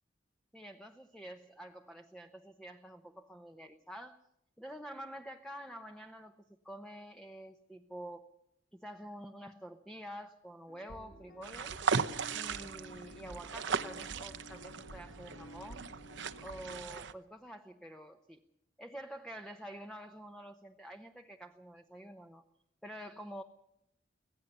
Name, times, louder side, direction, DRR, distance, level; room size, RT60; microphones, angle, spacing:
voice 1, 0.5-4.2 4.6-8.3 8.7-11.8 12.3-15.9 16.4-18.4 18.8-22.4 22.8-23.4, right 1 dB, 5° left, 6 dB, 0.9 m, -48 dB
sound 1, 10.7-16.8, equal, 60° left, 2.1 m, -52 dB
sound 2, 11.4-17.1, right 5 dB, 70° right, 0.9 m, -37 dB
24.5 x 17.0 x 6.8 m, 0.80 s
head